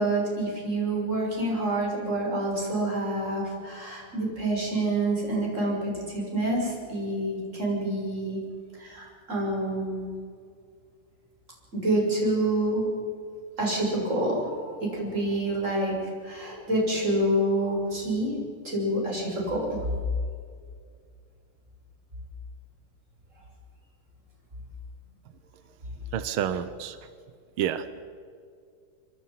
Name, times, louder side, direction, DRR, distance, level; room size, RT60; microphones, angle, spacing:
voice 1, 0.0-8.4 8.8-10.1 11.7-12.8 13.6-16.0 16.2-18.3 18.6-19.9, right 1 dB, 20° right, -2 dB, 7.0 m, -27 dB
voice 2, 26.1-27.0 27.6-27.8, right 9 dB, 85° right, 12 dB, 1.2 m, -28 dB
25.5 x 24.5 x 5.8 m, 2.2 s
omnidirectional pair, 3.5 m